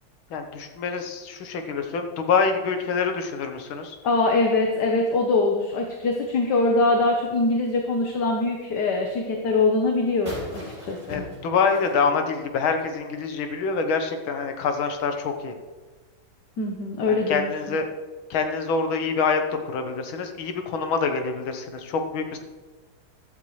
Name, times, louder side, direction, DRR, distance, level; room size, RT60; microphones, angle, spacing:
voice 1, 0.3-4.0 11.1-15.5 17.1-17.9 18.3-19.4 19.7-22.4, left 5 dB, 75° left, 6 dB, 1.9 m, -26 dB
voice 2, 4.0-11.2 16.6-17.8, left 3 dB, 60° left, 2 dB, 1.6 m, -23 dB
sound 1, 10.3-13.0, left 1 dB, 25° right, 5.1 m, -40 dB
15.0 x 12.5 x 3.2 m, 1.3 s
omnidirectional pair, 2.3 m